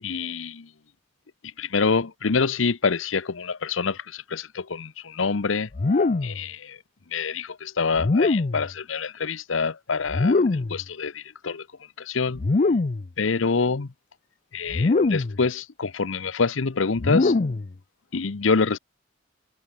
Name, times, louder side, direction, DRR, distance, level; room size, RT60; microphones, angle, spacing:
voice 1, 0.0-0.7 1.6-5.7 6.2-6.8 7.1-10.4 10.7-11.7 12.0-12.4 13.2-13.9 14.5-17.3 18.1-18.8, left 4 dB, 70° left, 0.8 m, -26 dB
sound 1, 5.7-6.4 8.0-8.7 10.1-10.8 12.4-13.1 14.7-15.4 17.0-17.7, left 3 dB, 40° left, 0.6 m, -22 dB
head